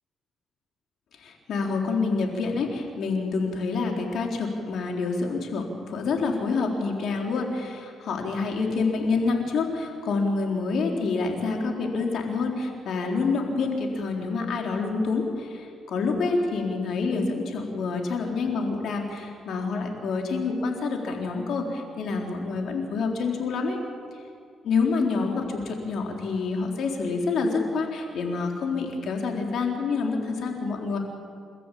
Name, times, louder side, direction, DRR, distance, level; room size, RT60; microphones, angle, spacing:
voice 1, 1.1-23.8 24.6-31.0, left 4 dB, 70° left, 1 dB, 4.1 m, -27 dB
30.0 x 14.0 x 8.6 m, 2.3 s
cardioid pair, 90°, 0 cm